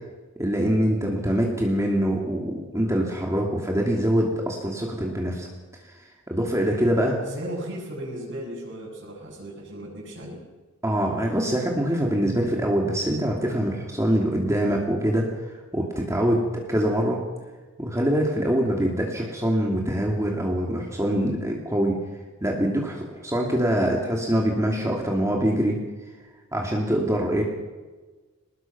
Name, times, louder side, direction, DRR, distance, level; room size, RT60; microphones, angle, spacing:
voice 1, 0.4-5.5 6.3-7.2 10.8-17.2 17.8-22.0 22.4-25.8 26.5-27.4, equal, 15° right, 0 dB, 2.7 m, -24 dB
voice 2, 7.3-10.4, right 1 dB, 60° right, -7 dB, 7.1 m, -36 dB
24.0 x 20.0 x 6.1 m, 1.3 s
head